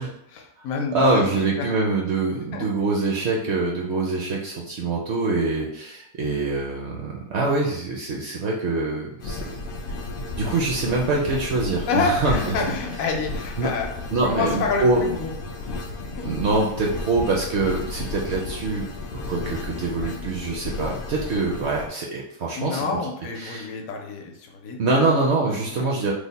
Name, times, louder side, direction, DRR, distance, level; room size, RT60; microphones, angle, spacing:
voice 1, 0.0-1.3 1.6-1.7 2.5-2.7 11.9-13.9 14.2-15.3 16.2-16.3 22.6-25.2 25.7-25.9, left 4 dB, 75° left, 2 dB, 1.0 m, -28 dB
voice 2, 0.9-9.6 10.4-12.4 13.6-13.7 14.1-15.0 16.2-18.9 19.3-23.0 23.4-23.7 24.8-26.1, right 3 dB, 65° right, -2 dB, 0.7 m, -24 dB
sound 1, 9.2-21.9, left 2 dB, 90° left, 0.5 m, -33 dB
3.2 x 2.0 x 4.0 m, 0.76 s
omnidirectional pair, 1.5 m